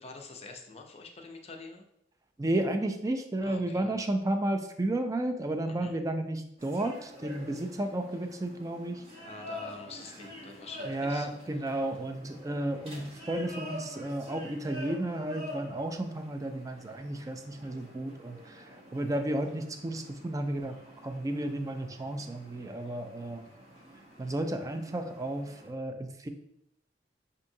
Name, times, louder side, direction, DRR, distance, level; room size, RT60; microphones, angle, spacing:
voice 1, 0.0-1.8 3.4-3.9 5.7-5.9 9.2-11.3 11.6-12.0, left 3 dB, 35° left, 3 dB, 0.6 m, -46 dB
voice 2, 2.4-9.0 10.9-18.7 18.9-23.5 24.2-26.3, right 1 dB, 20° right, 7 dB, 0.4 m, -33 dB
sound 1, 6.6-25.7, equal, 35° right, 1.0 m, -47 dB
6.3 x 2.7 x 2.7 m, 0.78 s
head